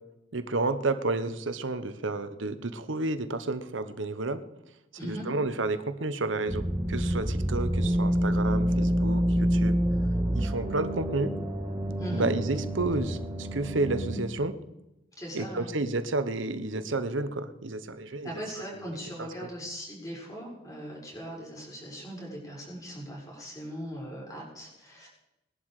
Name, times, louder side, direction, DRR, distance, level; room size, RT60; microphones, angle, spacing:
voice 1, 0.3-4.4 5.0-9.8 10.3-11.3 12.1-14.6 15.3-18.3 19.2-19.5, right 2 dB, 80° right, 11 dB, 1.1 m, -31 dB
voice 2, 4.9-5.3 12.0-12.3 15.2-15.7 18.0-25.1, equal, 20° left, -2 dB, 5.8 m, -39 dB
sound 1, 6.5-14.2, equal, 10° right, 2.0 m, -27 dB
20.0 x 11.0 x 4.9 m, 0.93 s
head